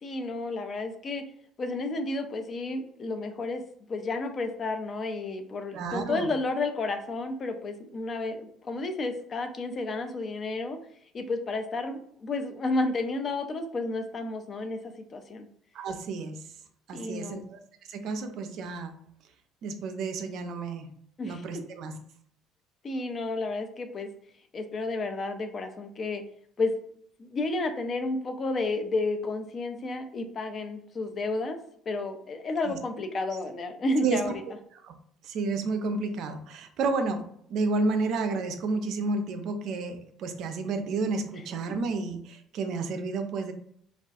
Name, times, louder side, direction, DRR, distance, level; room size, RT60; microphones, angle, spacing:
voice 1, 0.0-1.2 1.6-3.6 3.9-10.8 11.1-15.5 16.9-17.5 21.2-21.4 22.8-24.1 24.5-26.2 26.6-26.7 27.2-31.6 31.9-34.4 41.3-41.4, left 2 dB, 40° left, 7 dB, 0.4 m, -31 dB
voice 2, 5.7-6.3 15.7-16.4 16.9-17.6 17.9-18.9 19.6-20.9 21.2-21.9 32.7-32.8 34.0-34.2 34.8-34.9 35.2-43.5, right 3 dB, 60° right, 7 dB, 0.4 m, -31 dB
2.3 x 2.2 x 2.5 m, 0.66 s
hypercardioid pair, 55°, 0 cm